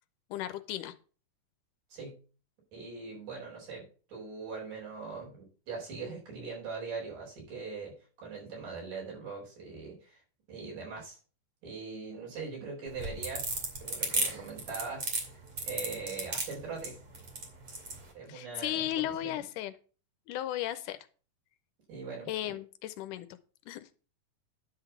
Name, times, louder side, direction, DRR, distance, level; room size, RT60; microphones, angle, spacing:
voice 1, 0.3-0.9 18.3-19.7 20.3-21.0 22.3-23.3 23.7-23.9, left 13 dB, 80° left, 12 dB, 2.0 m, -35 dB
voice 2, 2.7-10.2 10.5-11.2 11.6-13.5 13.8-15.4 15.6-17.0 18.1-19.3 21.9-22.6, right 4 dB, 75° right, -4 dB, 6.0 m, -41 dB
sound 1, 12.9-18.0, right 3 dB, 45° right, 3.0 m, -33 dB
10.5 x 3.9 x 6.9 m, 0.38 s
omnidirectional pair, 3.8 m